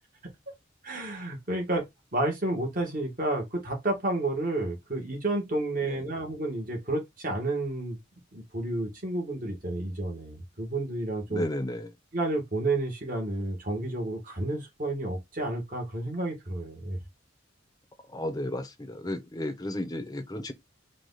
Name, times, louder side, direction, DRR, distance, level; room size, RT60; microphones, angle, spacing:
voice 1, 0.8-1.8 2.1-8.0 8.3-11.4 12.1-17.0, right 2 dB, 45° right, 1.7 m, -31 dB
voice 2, 11.3-11.9 18.1-20.5, left 1 dB, 20° left, 0.8 m, -33 dB
4.8 x 2.5 x 4.0 m
head